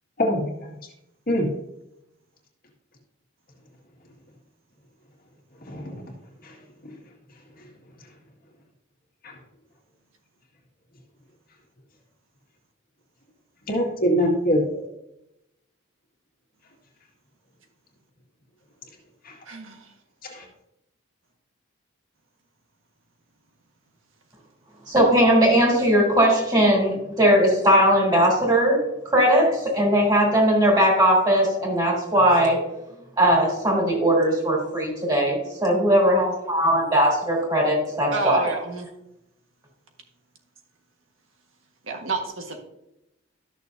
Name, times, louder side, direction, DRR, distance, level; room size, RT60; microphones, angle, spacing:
voice 1, 0.2-0.7 1.3-1.5 5.7-6.0 6.4-6.6 6.8-6.9 7.6-7.7 9.2-9.3 13.7-14.9 19.2-19.4 20.2-20.5, equal, 45° left, 0 dB, 1.9 m, -24 dB
voice 2, 19.5-19.9 38.1-38.9 41.8-42.6, right 3 dB, 80° right, 3 dB, 1.6 m, -29 dB
voice 3, 24.9-32.6 33.2-38.5, equal, 20° right, -1 dB, 3.5 m, -19 dB
13.5 x 6.7 x 2.7 m, 0.87 s
head